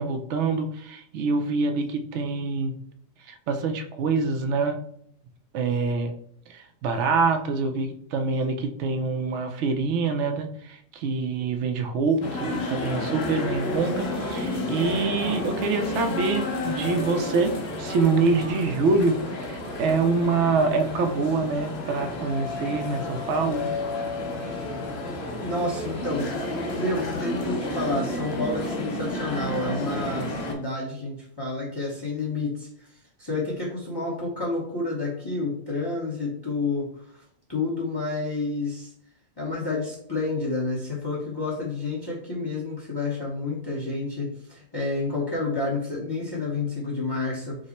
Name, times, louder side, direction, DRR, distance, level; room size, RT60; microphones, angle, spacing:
voice 1, 0.0-2.7 3.3-4.8 5.5-6.1 6.5-23.7, right 4 dB, 70° right, 7 dB, 0.8 m, -25 dB
sound 1, 12.2-30.5, left 1 dB, 55° left, 1.0 m, -31 dB
voice 2, 25.4-32.9 33.2-36.9 37.5-38.9 39.4-47.6, left 3 dB, 20° left, -4 dB, 0.8 m, -29 dB
5.0 x 2.1 x 4.1 m, 0.68 s
omnidirectional pair, 1.4 m